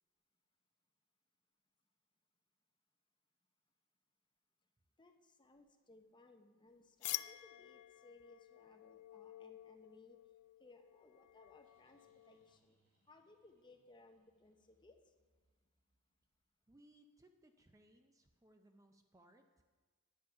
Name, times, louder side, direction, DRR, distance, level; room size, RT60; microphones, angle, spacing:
voice 1, 5.0-10.2 10.6-12.8 13.1-15.0, left 2 dB, 20° left, 5 dB, 0.8 m, -63 dB
sound 1, 7.0-12.6, left 16 dB, 90° left, 0.3 m, -49 dB
sound 2, 11.1-16.6, right 1 dB, 65° right, 3.6 m, -82 dB
voice 2, 16.7-19.6, right 1 dB, 15° right, 6 dB, 0.5 m, -67 dB
10.0 x 9.0 x 5.7 m, 1.4 s
head